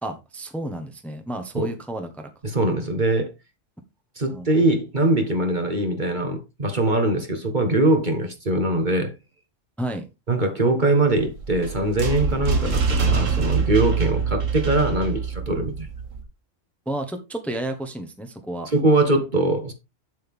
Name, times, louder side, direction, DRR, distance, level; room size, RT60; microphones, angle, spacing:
voice 1, 0.0-2.3 4.3-4.5 9.8-10.0 16.8-18.7, right 1 dB, ahead, 1.3 m, -31 dB
voice 2, 2.4-3.3 4.2-9.1 10.3-15.9 18.7-19.7, right 2 dB, 40° right, 1.6 m, -22 dB
sound 1, 11.1-16.2, right 5 dB, 75° right, 1.9 m, -25 dB
8.0 x 7.8 x 3.6 m
omnidirectional pair, 1.3 m